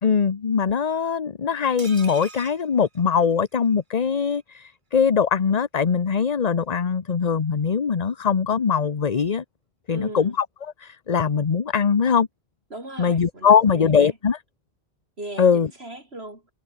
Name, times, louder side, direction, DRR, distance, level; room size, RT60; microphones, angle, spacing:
voice 1, 0.0-9.4 9.9-12.3 13.0-14.4 15.4-15.7, left 6 dB, 40° left, 0.9 m, -21 dB
sound 1, 1.8-3.7 4.1-4.2 4.4-4.5, right 3 dB, 50° right, 2.2 m, -43 dB
voice 2, 9.9-10.4 12.7-14.1 15.2-16.5, right 1 dB, 75° right, 6.6 m, -38 dB
omnidirectional pair, 1.1 m